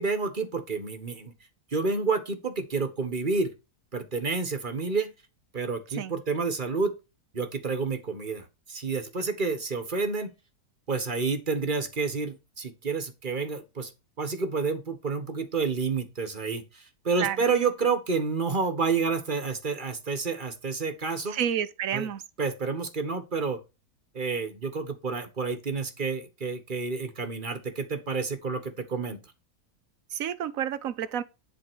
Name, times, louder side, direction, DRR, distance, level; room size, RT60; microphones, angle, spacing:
voice 1, 0.0-1.3 1.7-3.5 3.9-5.1 5.5-6.9 7.3-10.3 10.9-13.9 14.2-21.4 21.9-22.1 22.4-23.6 24.1-29.2, right 4 dB, 30° right, 1.4 m, -29 dB
voice 2, 21.3-22.2 30.1-31.2, right 9 dB, 60° right, 1.1 m, -30 dB
11.0 x 4.2 x 6.2 m
omnidirectional pair, 1.7 m